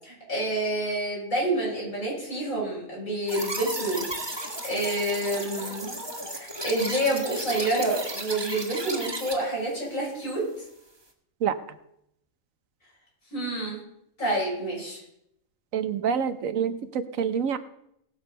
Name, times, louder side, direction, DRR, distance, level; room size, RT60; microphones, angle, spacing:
voice 1, 0.0-4.0 4.6-5.9 6.3-10.4 13.3-13.8 14.2-15.0, right 1 dB, 85° left, -5 dB, 6.8 m, -28 dB
sound 1, 3.3-9.3, right 1 dB, 20° right, 1.6 m, -34 dB
voice 2, 15.7-17.6, right 7 dB, 80° right, 11 dB, 1.2 m, -27 dB
18.0 x 7.1 x 5.3 m, 0.78 s
omnidirectional pair, 1.4 m